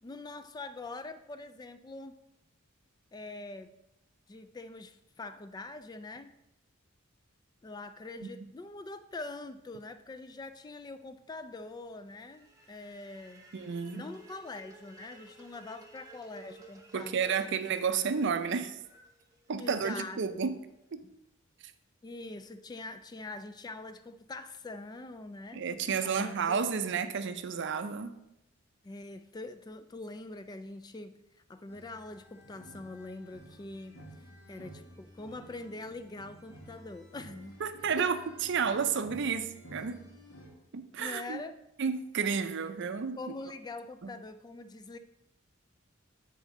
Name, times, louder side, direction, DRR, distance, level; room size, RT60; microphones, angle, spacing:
voice 1, 0.0-2.2 3.1-3.8 4.3-6.3 7.6-13.5 13.9-17.6 19.6-20.5 22.0-25.6 26.0-26.6 28.8-31.1 31.5-34.0 34.5-37.6 38.0-38.1 41.0-41.6 43.2-45.0, left 2 dB, 20° left, 0.3 m, -44 dB
sound 1, 12.1-20.2, right 2 dB, 15° right, 0.9 m, -56 dB
voice 2, 13.5-14.1 16.9-18.8 19.5-20.6 20.9-21.0 25.5-28.2 37.6-38.2 38.5-40.1 40.7-41.4 41.8-43.2 44.0-44.1, right 6 dB, 60° right, 0.5 m, -31 dB
sound 2, 31.7-40.5, equal, 70° left, 1.9 m, -52 dB
9.8 x 4.1 x 3.7 m
head